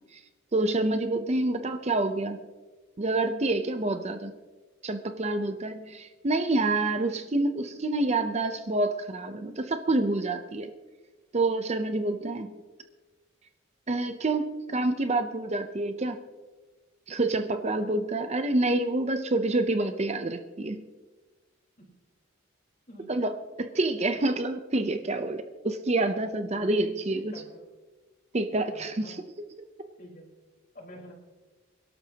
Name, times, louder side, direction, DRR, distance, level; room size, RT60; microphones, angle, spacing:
voice 1, 0.5-2.4 3.0-4.3 4.8-10.7 11.3-12.5 13.9-16.2 17.1-20.8 23.1-23.3 23.6-27.3 28.3-29.2 29.6-29.7, right 2 dB, 30° right, 8 dB, 0.6 m, -27 dB
voice 2, 27.2-27.6 28.5-29.2 30.0-30.3 30.7-31.1, equal, 40° left, -1 dB, 4.3 m, -48 dB
28.0 x 12.0 x 2.9 m, 1.3 s
head